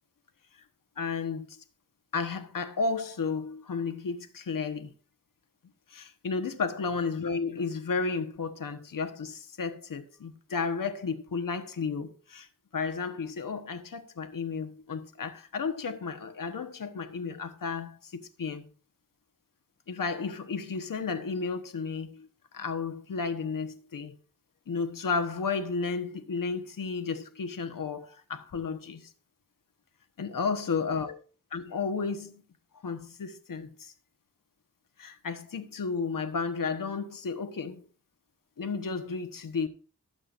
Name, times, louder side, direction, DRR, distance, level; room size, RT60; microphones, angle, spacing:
voice 1, 1.0-1.6 2.1-4.9 5.9-12.5 12.7-18.6 19.9-24.1 24.7-29.1 30.2-31.2 31.5-32.4 32.8-33.9 35.0-37.9 38.6-39.7, left 5 dB, 85° left, 1.3 m, -33 dB
19.0 x 7.7 x 2.6 m
wide cardioid pair, 75°, 32 cm